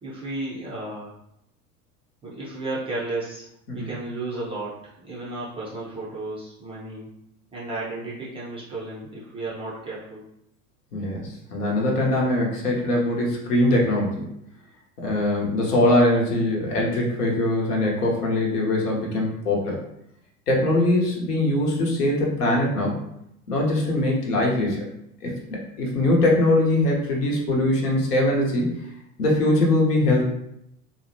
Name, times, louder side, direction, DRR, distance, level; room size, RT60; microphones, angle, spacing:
voice 1, 0.0-1.2 2.2-3.5 3.7-7.1 7.5-10.2, right 2 dB, 15° right, -7 dB, 0.3 m, -33 dB
voice 2, 10.9-14.3 15.0-19.8 20.5-23.0 23.5-24.9 25.2-28.7 29.2-30.3, left 1 dB, 85° left, -2 dB, 0.8 m, -22 dB
2.6 x 2.0 x 2.6 m, 0.78 s
hypercardioid pair, 80°, 45 cm